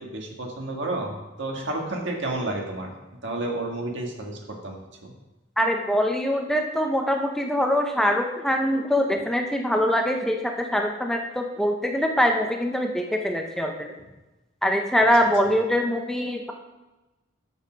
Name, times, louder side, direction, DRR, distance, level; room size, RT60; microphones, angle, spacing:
voice 1, 0.0-2.9 3.2-5.1, right 2 dB, 65° right, 1 dB, 1.6 m, -31 dB
voice 2, 5.6-13.9 14.6-16.5, equal, ahead, 2 dB, 0.6 m, -23 dB
7.1 x 6.6 x 5.1 m, 1.1 s
head